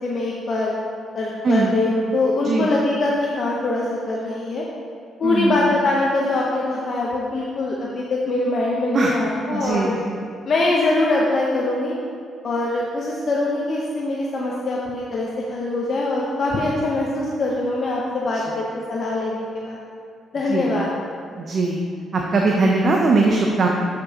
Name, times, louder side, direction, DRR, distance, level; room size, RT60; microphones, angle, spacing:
voice 1, 0.0-0.7 1.1-4.6 5.2-9.9 10.5-12.0 12.4-19.8 20.3-20.9, left 2 dB, 50° left, -3 dB, 0.8 m, -23 dB
voice 2, 1.4-1.8 2.4-2.7 5.2-5.7 8.9-9.1 9.5-10.3 20.5-20.7 21.3-21.8 22.1-23.7, right 3 dB, 45° right, 0 dB, 0.6 m, -20 dB
10.5 x 5.2 x 2.8 m, 2.3 s
cardioid pair, 90°, 0 cm